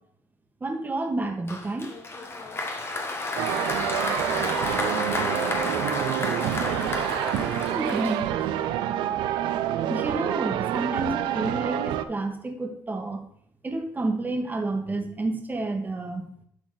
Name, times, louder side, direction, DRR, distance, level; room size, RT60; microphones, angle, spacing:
voice 1, 0.6-1.9 7.7-8.2 9.9-13.2 13.6-16.3, right 2 dB, 20° right, 3 dB, 1.7 m, -29 dB
Applause, 1.5-8.6, left 2 dB, 30° left, 1.4 m, -31 dB
sound 1, 3.4-12.0, right 11 dB, 75° right, 0.5 m, -27 dB
voice 2, 3.8-6.0, left 3 dB, 55° left, -6 dB, 3.2 m, -42 dB
11.0 x 4.1 x 4.0 m, 0.67 s
supercardioid pair, 80°, 8 cm